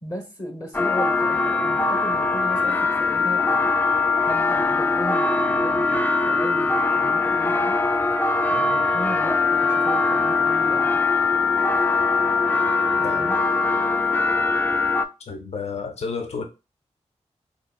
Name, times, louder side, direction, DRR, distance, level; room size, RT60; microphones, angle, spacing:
voice 1, 0.0-3.8 4.3-7.8 8.4-11.1 13.0-13.4, equal, 30° left, 0.9 m, -36 dB
sound 1, 0.7-15.1, left 3 dB, 15° left, 0.3 m, -21 dB
voice 2, 15.2-16.4, left 5 dB, 65° left, 0.6 m, -31 dB
3.8 x 2.7 x 2.2 m
cardioid pair, 55°, 12 cm